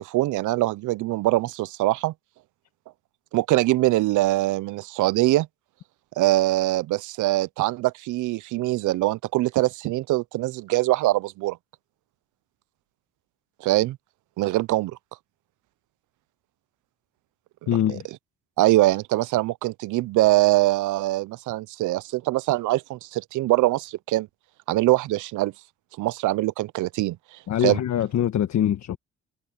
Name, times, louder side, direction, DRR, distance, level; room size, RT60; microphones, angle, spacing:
voice 1, 0.0-2.1 3.3-5.5 6.2-11.6 13.6-14.0 14.4-15.0 17.6-18.0 18.6-24.3 24.7-25.5 26.0-27.2 27.6-27.8, right 17 dB, 80° right, 0.6 m, -23 dB
voice 2, 17.7-18.0 27.5-29.0, left 10 dB, 65° left, 1.5 m, -23 dB
cardioid pair, 90°, 30 cm